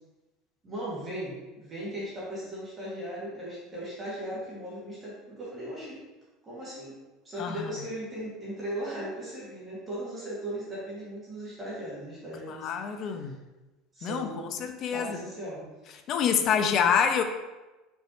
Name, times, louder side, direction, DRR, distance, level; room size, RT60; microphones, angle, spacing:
voice 1, 0.6-6.0 6.4-6.9 7.2-13.3 13.9-15.7, right 1 dB, 20° right, -8 dB, 2.1 m, -38 dB
voice 2, 7.4-7.7 12.5-13.3 14.0-14.3 14.6-15.2 16.1-17.2, left 7 dB, 40° left, 7 dB, 0.6 m, -26 dB
6.0 x 5.4 x 3.0 m, 1.1 s
cardioid pair, 160°, 0 cm